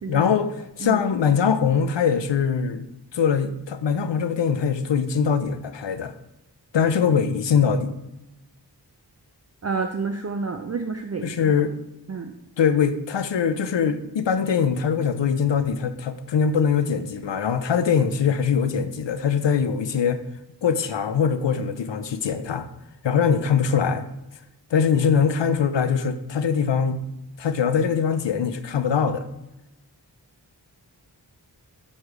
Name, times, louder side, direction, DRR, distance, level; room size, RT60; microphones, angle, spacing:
voice 1, 0.1-2.8 3.1-6.1 6.7-8.0 11.2-11.7 12.6-20.2 20.6-22.7 23.0-24.1 24.7-27.0 27.4-29.2, left 6 dB, 90° left, 11 dB, 0.5 m, -22 dB
voice 2, 9.6-11.5 12.1-12.3, right 4 dB, 40° right, 5 dB, 0.4 m, -29 dB
6.4 x 3.2 x 4.7 m, 0.93 s
wide cardioid pair, 40°, 42 cm